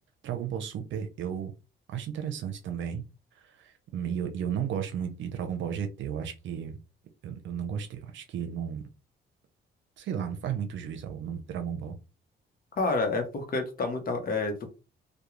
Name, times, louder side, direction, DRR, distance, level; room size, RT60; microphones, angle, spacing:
voice 1, 0.2-1.5 1.9-3.0 3.5-6.8 7.2-8.8 10.0-12.0, right 8 dB, 70° right, 6 dB, 0.6 m, -34 dB
voice 2, 12.8-14.7, left 3 dB, 45° left, 4 dB, 0.9 m, -29 dB
2.3 x 2.3 x 3.0 m, 0.31 s
cardioid pair, 90°, 20 cm